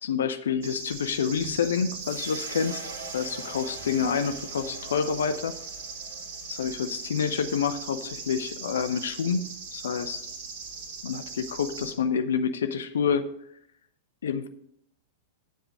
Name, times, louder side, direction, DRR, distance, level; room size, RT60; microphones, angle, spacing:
voice 1, 0.0-5.6 6.5-10.2 11.0-13.3 14.2-14.5, left 6 dB, 65° left, 10 dB, 0.6 m, -28 dB
sound 1, 0.6-11.9, right 4 dB, 55° right, 2.6 m, -39 dB
sound 2, 2.0-8.4, right 3 dB, 75° right, 1.6 m, -45 dB
10.0 x 7.9 x 4.7 m, 0.71 s
figure-of-eight pair, 100°, 0 cm